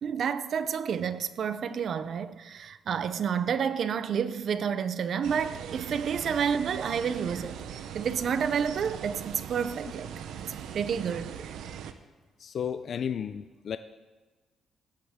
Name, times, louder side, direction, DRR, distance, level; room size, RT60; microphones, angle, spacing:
voice 1, 0.0-11.4, right 7 dB, 45° right, 0.5 m, -30 dB
sound 1, 5.2-11.9, right 8 dB, 90° right, 0.7 m, -40 dB
voice 2, 12.4-13.8, left 8 dB, 45° left, 0.3 m, -33 dB
15.5 x 12.0 x 3.6 m
cardioid pair, 170°, 0 cm